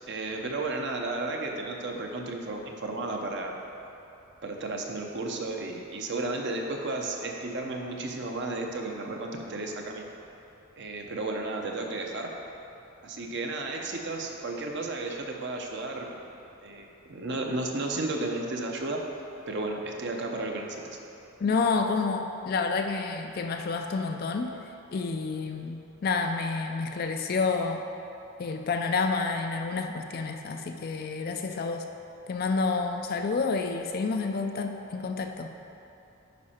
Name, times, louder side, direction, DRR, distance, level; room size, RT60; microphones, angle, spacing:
voice 1, 0.1-3.5 4.4-10.0 10.8-12.3 13.0-16.3 16.6-19.0 19.5-21.0, right 2 dB, 55° right, 1 dB, 0.8 m, -33 dB
voice 2, 21.4-24.6 24.9-27.8 28.4-31.9 32.3-35.5, left 4 dB, 45° left, 5 dB, 0.4 m, -29 dB
9.5 x 5.5 x 4.3 m, 2.9 s
head